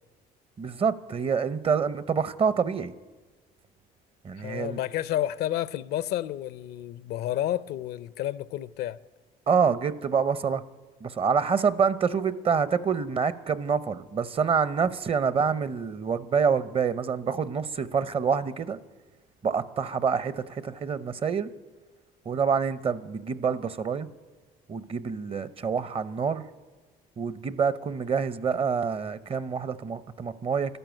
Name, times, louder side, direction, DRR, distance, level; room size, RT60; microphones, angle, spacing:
voice 1, 0.6-2.9 4.2-4.8 9.5-10.6 11.0-18.8 19.4-21.5 22.3-24.1 24.7-26.4 27.2-30.8, right 6 dB, 35° right, 0.7 m, -27 dB
voice 2, 4.4-9.0, left 12 dB, 75° left, 0.6 m, -30 dB
13.0 x 12.5 x 9.1 m
cardioid pair, 110°, 17 cm